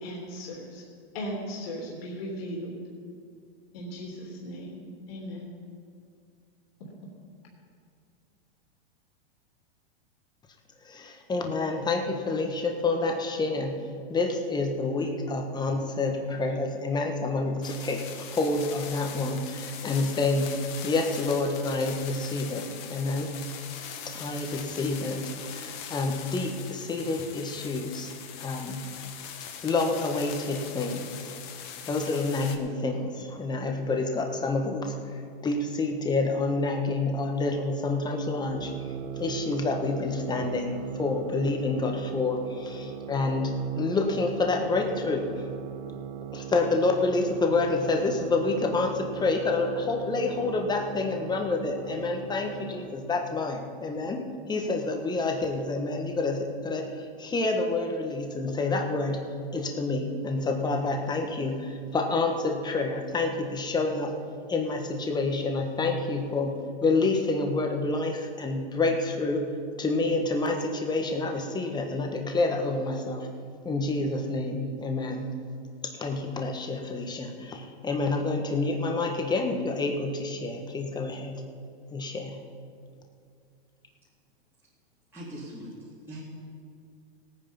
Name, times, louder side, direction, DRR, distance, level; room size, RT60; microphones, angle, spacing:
voice 1, 0.0-0.8 1.1-2.8 3.7-4.8 5.1-5.5, equal, 65° left, -2 dB, 3.2 m, -37 dB
voice 2, 10.8-13.8 14.1-20.5 20.8-23.4 24.0-28.1 28.4-28.9 29.6-31.4 31.9-45.4 46.3-59.2 59.5-64.2 64.5-69.5 69.8-73.3 73.6-75.4 75.8-81.4 81.9-82.4, left 3 dB, 15° left, 3 dB, 1.4 m, -28 dB
sound 1, 17.6-32.6, left 8 dB, 45° left, 1.6 m, -41 dB
sound 2, 38.5-53.1, right 8 dB, 75° right, 1.4 m, -39 dB
voice 3, 85.1-86.2, right 1 dB, 5° right, -10 dB, 2.8 m, -41 dB
18.0 x 9.2 x 5.5 m, 2.3 s
hypercardioid pair, 135°, 31 cm